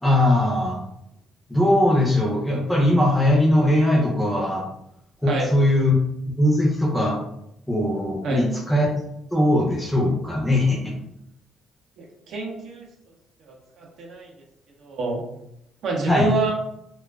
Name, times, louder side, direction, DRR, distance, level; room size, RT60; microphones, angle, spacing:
voice 1, 0.0-0.8 1.5-4.6 5.2-5.9 6.4-7.2 7.7-8.9 9.3-10.9 16.1-16.3, left 1 dB, 10° left, -2 dB, 0.6 m, -20 dB
voice 2, 5.2-5.5 8.2-8.5 12.0-12.9 13.5-14.3 14.8-15.2 15.8-16.5, right 3 dB, 65° right, -1 dB, 0.6 m, -27 dB
2.4 x 2.3 x 2.2 m, 0.80 s
cardioid pair, 105°, 0 cm